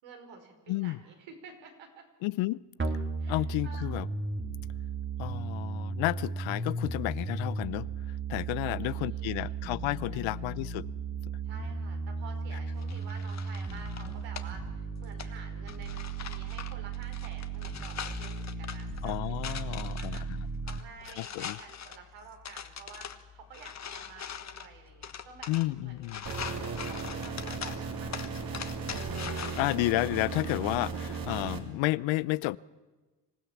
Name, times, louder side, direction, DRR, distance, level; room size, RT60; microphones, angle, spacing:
voice 1, 0.0-2.0 3.2-4.0 8.6-9.6 10.1-10.6 11.4-19.1 19.4-25.5 25.8-26.2 26.5-29.1, right 5 dB, 70° right, 5.1 m, -51 dB
voice 2, 0.7-1.0 2.2-2.6 3.3-4.1 5.2-7.9 8.3-10.9 19.0-20.5 21.2-21.6 25.5-26.2 29.6-32.6, left 19 dB, 75° left, 0.7 m, -31 dB
sound 1, 2.8-20.8, right 4 dB, 25° right, 2.2 m, -35 dB
sound 2, 12.8-29.7, left 7 dB, 35° left, 1.4 m, -43 dB
sound 3, 26.3-31.6, right 5 dB, 45° right, 3.2 m, -36 dB
26.0 x 15.5 x 7.3 m
supercardioid pair, 85°, 47 cm